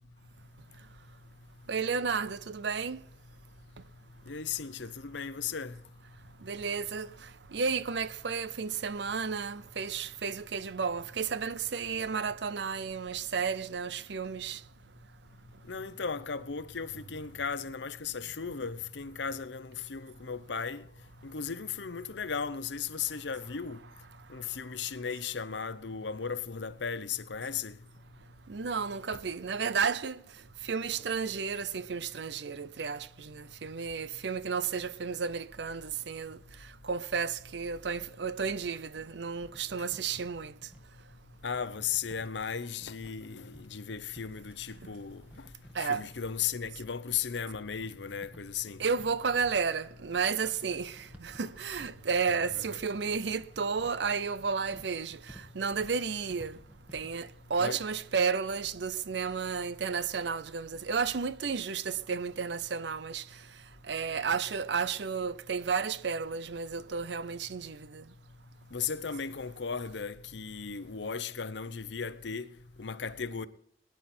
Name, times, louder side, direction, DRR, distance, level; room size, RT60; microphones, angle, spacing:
voice 1, 1.7-3.0 6.4-14.6 28.5-40.7 44.8-44.9 45.7-46.1 48.8-56.6 56.9-68.1, right 5 dB, 70° right, 0.6 m, -32 dB
voice 2, 4.3-5.8 15.7-20.8 21.2-23.8 24.3-27.8 41.4-45.5 45.8-48.8 57.6-57.8 68.7-73.5, left 6 dB, 75° left, 0.8 m, -36 dB
sound 1, 38.6-57.3, equal, 10° right, 1.5 m, -56 dB
19.5 x 10.5 x 4.3 m
head